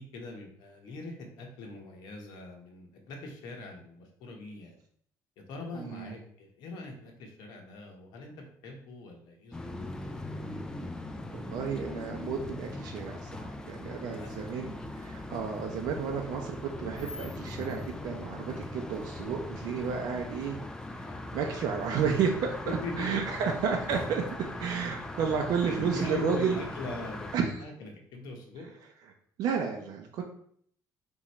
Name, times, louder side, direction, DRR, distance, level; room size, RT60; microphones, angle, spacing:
voice 1, 0.0-4.8 5.5-10.2 14.2-14.3 21.0-21.2 22.6-22.9 24.6-24.7 25.0-25.2 25.6-28.7, left 3 dB, 75° left, 1 dB, 1.1 m, -42 dB
voice 2, 5.7-6.2 11.3-20.6 20.9-21.1 21.3-24.2 24.6-26.6 27.3-27.6 29.4-30.2, right 6 dB, 70° right, 2 dB, 0.6 m, -32 dB
sound 1, 9.5-27.4, left 1 dB, 10° left, 0.4 m, -40 dB
3.6 x 3.0 x 4.2 m, 0.63 s
cardioid pair, 140°, 7 cm